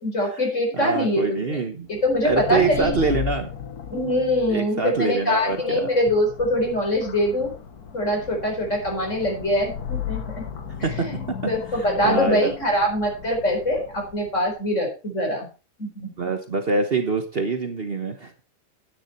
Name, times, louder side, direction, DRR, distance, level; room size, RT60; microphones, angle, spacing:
voice 1, 0.0-1.6 1.9-3.0 3.9-7.5 7.9-10.4 11.0-11.2 11.5-15.5 15.8-16.1, left 1 dB, 55° left, 1 dB, 4.8 m, -23 dB
voice 2, 0.7-1.9 2.2-3.5 4.5-5.8 10.8-11.1 11.4-11.5 11.8-12.5 16.2-18.4, right 4 dB, 40° right, 6 dB, 1.3 m, -25 dB
sound 1, 1.9-14.5, left 8 dB, 90° left, 1.9 m, -35 dB
9.9 x 9.6 x 4.4 m, 0.34 s
omnidirectional pair, 1.6 m